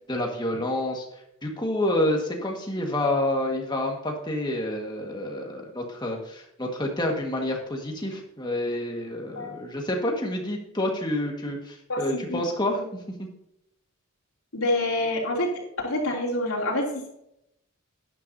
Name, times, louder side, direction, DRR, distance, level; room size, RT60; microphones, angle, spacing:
voice 1, 0.1-1.1 1.4-13.3, left 1 dB, 20° left, 1 dB, 1.6 m, -28 dB
voice 2, 11.9-12.4 12.7-12.8 14.5-15.5 15.8-17.1, left 1 dB, 75° left, -3 dB, 2.9 m, -27 dB
12.0 x 10.0 x 2.7 m, 0.80 s
head